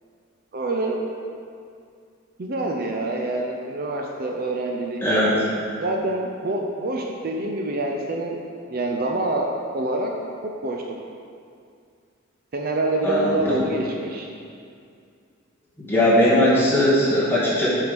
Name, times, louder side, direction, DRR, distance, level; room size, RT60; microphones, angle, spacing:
voice 1, 0.5-1.1 2.4-5.0 5.8-8.4 8.7-10.1 10.4-10.8 12.5-14.3, right 2 dB, 45° right, 1 dB, 0.6 m, -26 dB
voice 2, 5.0-5.3 13.0-13.6 15.8-17.7, left 1 dB, 10° left, -8 dB, 1.9 m, -19 dB
8.0 x 4.8 x 5.3 m, 2.4 s
head